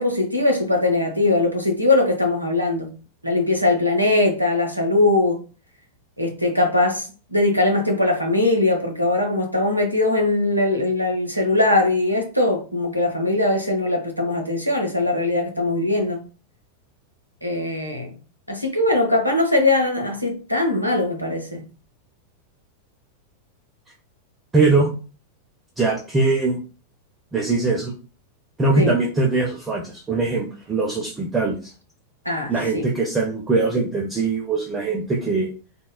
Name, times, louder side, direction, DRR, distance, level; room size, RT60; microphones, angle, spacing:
voice 1, 0.0-2.9 3.2-5.4 6.2-16.2 17.4-18.1 18.5-21.6 28.8-28.9 32.3-32.9, left 2 dB, 85° right, 0.6 m, -21 dB
voice 2, 24.5-24.9 25.8-26.6 27.3-27.9 28.6-31.7 32.5-35.5, right 3 dB, 15° right, 0.5 m, -21 dB
3.6 x 2.0 x 2.2 m
figure-of-eight pair, 90°, 0 cm